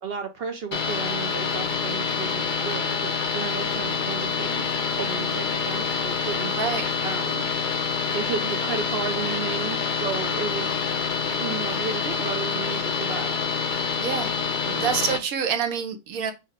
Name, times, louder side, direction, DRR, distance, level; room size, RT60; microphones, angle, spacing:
voice 1, 0.0-6.5 7.0-7.5 8.1-10.7 11.4-13.4 14.6-14.9, right 6 dB, 60° right, 0.7 m, -33 dB
sound 1, 0.7-15.2, left 5 dB, 50° left, 0.6 m, -27 dB
voice 2, 6.5-6.9 14.0-14.3 14.7-16.3, right 7 dB, 85° right, 1.2 m, -27 dB
5.5 x 2.1 x 3.5 m
omnidirectional pair, 1.4 m